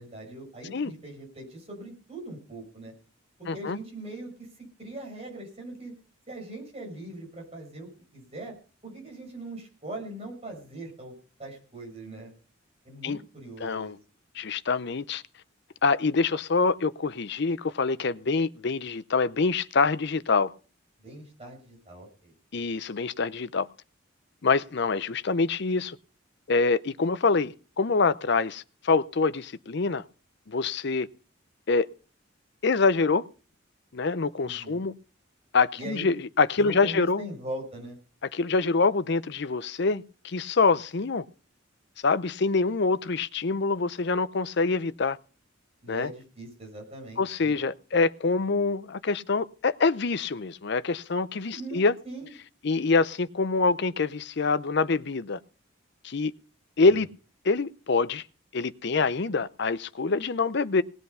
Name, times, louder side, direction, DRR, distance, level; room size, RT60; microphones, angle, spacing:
voice 1, 0.0-2.9 3.4-5.9 6.3-8.5 8.8-11.1 11.4-12.3 12.8-14.0 21.0-22.3 34.4-34.8 35.8-36.1 36.6-38.0 45.8-47.6 51.4-52.3 56.8-56.9, right 1 dB, 30° right, 6.0 m, -41 dB
voice 2, 3.5-3.8 13.0-13.2 13.6-14.0 14.4-15.2 15.8-20.5 22.5-23.7 24.4-26.0 26.5-30.0 30.5-31.1 31.7-31.9 32.6-33.2 33.9-34.9 35.5-37.2 38.3-41.2 42.0-45.2 45.9-46.1 47.2-51.9 52.6-55.4 56.0-56.3 56.8-57.1 57.4-58.2 58.5-60.8, left 4 dB, 55° left, 0.6 m, -25 dB
19.0 x 8.1 x 5.6 m
head